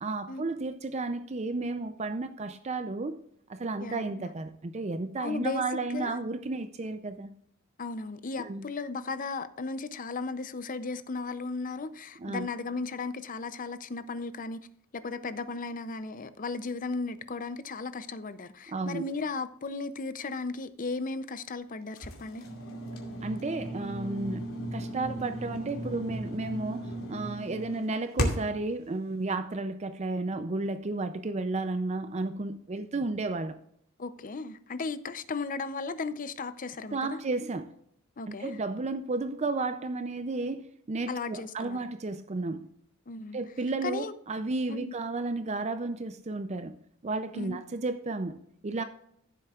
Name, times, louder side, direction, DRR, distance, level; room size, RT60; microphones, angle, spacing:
voice 1, 0.0-3.2 3.5-7.4 8.4-8.7 12.2-12.5 18.7-19.0 23.2-33.6 36.9-37.7 38.3-42.7 43.3-46.8 47.0-48.8, right 3 dB, 30° right, 0.5 m, -33 dB
voice 2, 3.8-4.3 5.2-6.2 7.8-14.7 14.9-22.4 34.0-37.2 38.2-38.6 41.1-41.8 43.1-43.4 43.8-44.1 44.7-44.9 47.3-47.6, left 3 dB, 40° left, 0.6 m, -36 dB
sound 1, 22.0-28.6, equal, 85° left, 2.4 m, -35 dB
14.5 x 7.6 x 2.4 m
head